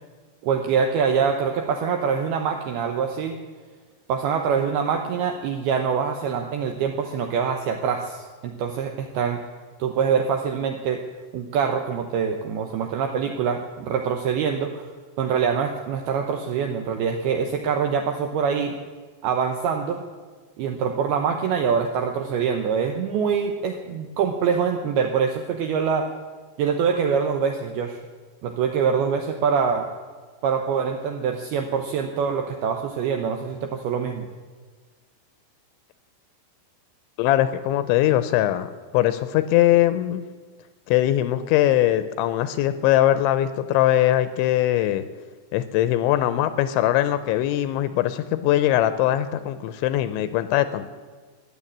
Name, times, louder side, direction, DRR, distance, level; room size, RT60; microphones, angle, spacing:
voice 1, 0.4-3.4 4.1-9.4 9.8-11.0 11.3-14.9 15.2-18.8 19.2-20.0 20.6-26.1 26.6-28.0 28.4-29.9 30.4-34.3, right 6 dB, 80° right, 5 dB, 2.3 m, -24 dB
voice 2, 37.2-40.3 40.9-45.0 45.5-50.9, left 13 dB, 80° left, 12 dB, 2.9 m, -21 dB
16.0 x 10.5 x 8.5 m, 1.5 s
omnidirectional pair, 5.6 m